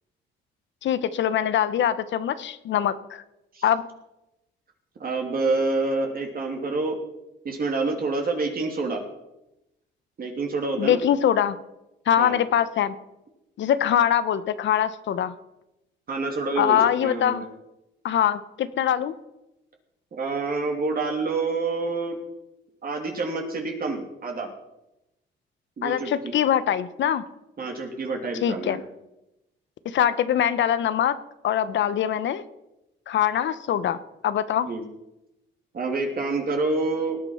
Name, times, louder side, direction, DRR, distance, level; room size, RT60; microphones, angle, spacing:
voice 1, 0.8-3.2 3.6-3.8 10.8-11.6 12.1-12.9 13.6-15.3 16.6-17.4 18.0-19.1 25.8-27.2 28.4-28.8 29.8-31.2 31.4-32.4 33.1-34.0 34.2-34.7, left 10 dB, 70° left, 14 dB, 1.0 m, -23 dB
voice 2, 5.0-7.0 7.4-9.0 10.2-11.0 12.2-12.4 16.1-17.4 20.1-22.2 22.8-24.5 25.8-26.1 27.6-28.8 34.7-34.8 35.7-37.2, right 3 dB, 45° right, 2 dB, 2.9 m, -27 dB
19.0 x 9.0 x 5.6 m, 0.92 s
cardioid pair, 90°, 20 cm